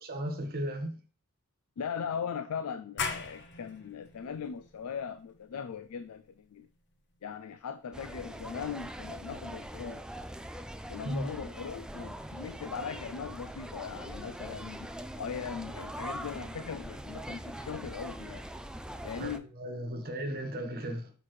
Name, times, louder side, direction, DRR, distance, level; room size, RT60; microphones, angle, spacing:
voice 1, 0.1-1.0 11.0-11.3 19.2-19.3 19.6-21.1, right 1 dB, 45° right, 1.3 m, -35 dB
voice 2, 1.8-6.7 7.2-10.0 10.9-14.9 15.2-18.4 19.0-19.5, left 6 dB, 85° left, 0.4 m, -39 dB
sound 1, 3.0-8.4, left 5 dB, 55° left, 1.0 m, -42 dB
sound 2, 7.9-19.4, right 1 dB, 5° right, 0.3 m, -42 dB
6.6 x 5.6 x 3.2 m
head